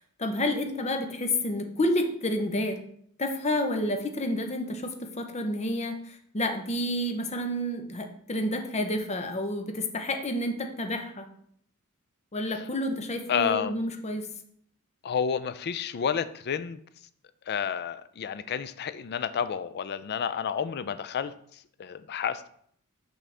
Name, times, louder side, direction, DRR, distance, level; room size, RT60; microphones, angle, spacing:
voice 1, 0.0-2.8 3.2-11.3 12.3-14.3, left 1 dB, 30° left, 5 dB, 0.8 m, -30 dB
voice 2, 13.3-13.8 15.0-16.8 17.5-22.5, left 7 dB, 50° left, 13 dB, 0.4 m, -30 dB
6.2 x 5.5 x 3.4 m, 0.64 s
head